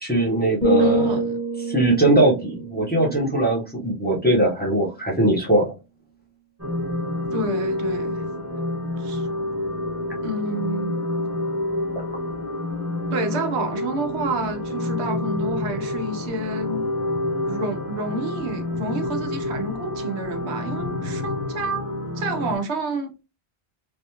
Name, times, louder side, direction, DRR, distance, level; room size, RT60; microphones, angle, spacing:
voice 1, 0.0-1.2 1.6-5.7, right 1 dB, 10° left, 0.8 m, -20 dB
sound 1, 0.6-4.6 4.9-5.3, right 2 dB, 40° left, 1.8 m, -26 dB
voice 2, 0.8-1.4 7.3-8.3 9.0-9.3 10.2-11.0 13.1-16.9 17.4-21.9 22.2-23.1, right 2 dB, 85° right, 1.0 m, -29 dB
sound 2, 6.6-22.6, left 1 dB, 15° right, 1.0 m, -28 dB
3.3 x 2.4 x 2.8 m
omnidirectional pair, 1.1 m